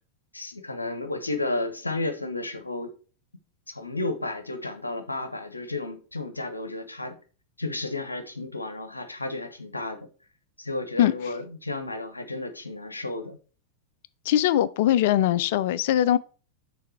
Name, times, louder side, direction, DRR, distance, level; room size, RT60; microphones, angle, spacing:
voice 1, 0.3-2.9 3.7-7.2 7.6-10.0 10.6-13.4, left 2 dB, 80° left, 0.7 m, -32 dB
voice 2, 14.3-16.2, left 12 dB, 50° left, 0.4 m, -21 dB
6.6 x 3.4 x 4.5 m
figure-of-eight pair, 90°, 0 cm